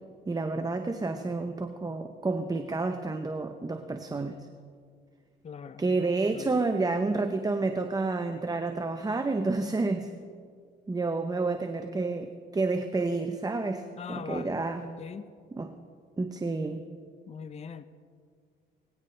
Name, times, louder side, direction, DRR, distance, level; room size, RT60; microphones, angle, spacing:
voice 1, 0.3-4.5 5.8-10.1 10.9-14.8 15.5-15.7 16.2-16.8, right 3 dB, 20° right, 7 dB, 0.7 m, -30 dB
voice 2, 5.4-6.1 6.3-6.6 14.0-15.3 17.3-17.8, left 6 dB, 35° left, 12 dB, 0.6 m, -42 dB
19.0 x 17.0 x 3.3 m, 2.1 s
cardioid pair, 90°, 20 cm